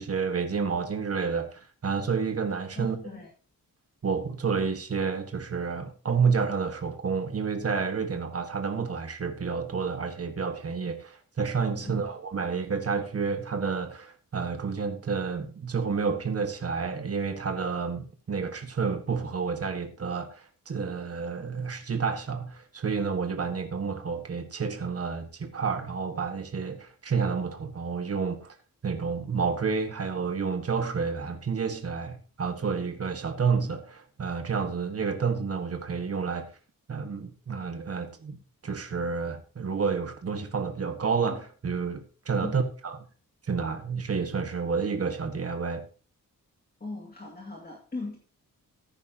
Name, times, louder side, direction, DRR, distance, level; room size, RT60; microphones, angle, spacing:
voice 1, 0.0-3.0 4.0-28.5 28.8-36.5 36.9-42.9 43.5-45.8, right 5 dB, 45° right, 1.5 m, -30 dB
voice 2, 2.7-3.3 11.8-12.0 42.4-42.6 46.8-48.2, left 3 dB, 25° left, 2.2 m, -38 dB
14.5 x 9.8 x 2.9 m
wide cardioid pair, 150°, 35 cm